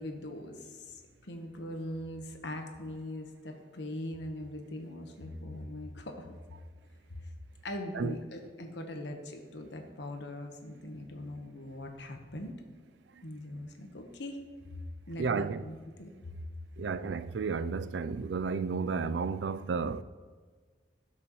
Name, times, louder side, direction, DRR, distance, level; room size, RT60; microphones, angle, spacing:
voice 1, 0.0-6.2 7.6-12.6 13.2-14.4 15.1-16.1, left 1 dB, 75° left, 1.2 m, -41 dB
voice 2, 15.2-15.6 16.8-20.0, right 5 dB, 80° right, 0.4 m, -32 dB
17.0 x 6.1 x 3.1 m
head